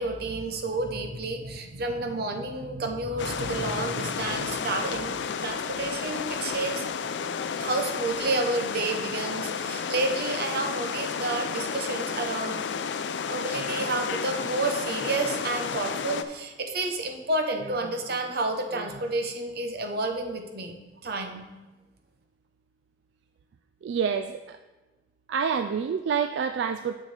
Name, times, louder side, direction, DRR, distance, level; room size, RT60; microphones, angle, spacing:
voice 1, 0.0-6.9 7.6-12.6 13.3-20.7 21.0-21.5, right 2 dB, 60° right, 4 dB, 0.9 m, -30 dB
sound 1, 3.2-16.2, left 6 dB, 80° left, 0.4 m, -32 dB
voice 2, 23.8-24.4 25.3-26.9, right 6 dB, 80° right, 8 dB, 0.3 m, -27 dB
9.1 x 6.8 x 3.3 m, 1.2 s
head